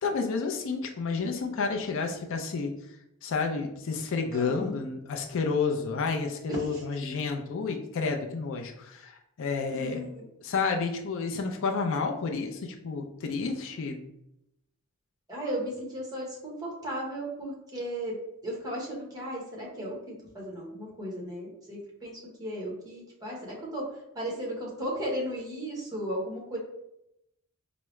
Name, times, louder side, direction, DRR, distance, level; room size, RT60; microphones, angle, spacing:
voice 1, 0.0-2.7 3.2-10.0 10.4-14.0, left 4 dB, 60° left, 3 dB, 0.4 m, -30 dB
voice 2, 4.3-4.8 6.5-6.8 9.7-10.2 15.3-18.1 18.4-20.0 20.3-23.8 24.1-26.6, equal, 15° right, -3 dB, 1.0 m, -35 dB
4.6 x 2.0 x 3.1 m, 0.83 s
head